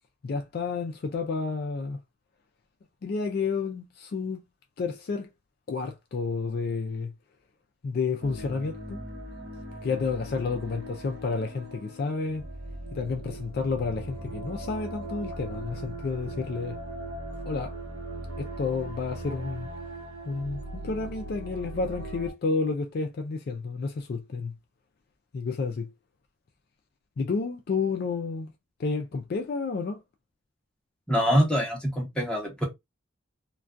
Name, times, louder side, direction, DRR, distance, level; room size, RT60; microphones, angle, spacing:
voice 1, 0.2-2.0 3.0-4.4 4.8-5.3 5.7-7.1 7.8-9.0 9.8-12.4 12.9-16.8 17.5-17.8 18.4-19.7 20.3-24.5 25.3-25.9 27.2-28.5 28.8-30.0, left 4 dB, 45° left, 0.3 m, -30 dB
sound 1, 8.2-22.3, right 1 dB, 55° right, 0.8 m, -39 dB
voice 2, 31.1-32.6, equal, 5° left, 0.8 m, -24 dB
2.2 x 2.2 x 2.4 m
head